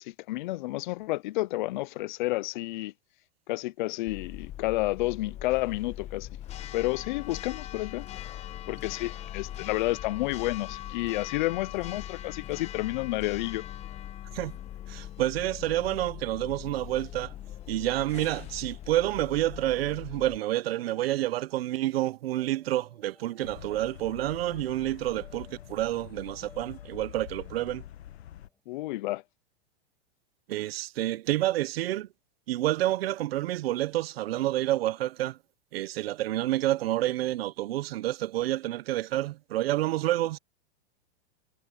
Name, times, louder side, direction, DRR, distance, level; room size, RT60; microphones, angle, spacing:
voice 1, 0.0-2.9 3.5-6.3 6.7-8.1 8.7-13.6 28.7-29.2, left 18 dB, 50° left, 0.4 m, -30 dB
Church bell, 4.1-20.4, left 12 dB, 20° left, 1.0 m, -41 dB
voice 2, 14.9-17.3 17.7-27.8 30.5-32.1 32.5-35.4 35.7-40.4, right 15 dB, 70° right, 0.8 m, -29 dB
sound 1, 16.0-28.6, left 2 dB, 5° left, 5.1 m, -60 dB
sound 2, 23.4-28.5, left 12 dB, 90° left, 1.4 m, -45 dB
supercardioid pair, 160°, 31 cm